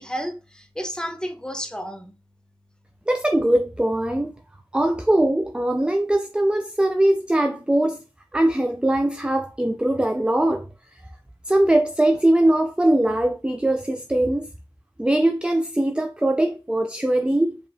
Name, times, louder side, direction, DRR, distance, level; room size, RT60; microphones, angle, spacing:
voice 1, 0.0-2.1, equal, 10° left, 0.8 m, -32 dB
voice 2, 3.1-4.3 4.7-8.0 8.3-10.7 11.5-14.5 15.0-17.6, right 1 dB, 10° right, 0.4 m, -21 dB
5.2 x 2.9 x 2.6 m
cardioid pair, 40°, 10 cm